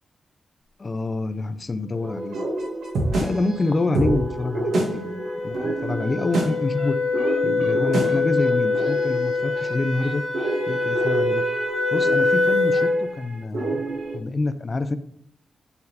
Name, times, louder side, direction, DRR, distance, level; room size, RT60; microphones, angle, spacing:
voice 1, 0.8-2.5 3.2-7.0 7.4-10.2 10.7-11.4 11.9-15.0, left 3 dB, 25° left, 11 dB, 0.5 m, -27 dB
sound 1, 2.0-14.2, right 2 dB, 90° right, 1.9 m, -29 dB
sound 2, 3.1-13.0, left 3 dB, 5° right, 2.4 m, -25 dB
8.7 x 4.2 x 4.1 m, 0.73 s
wide cardioid pair, 145°, 0 cm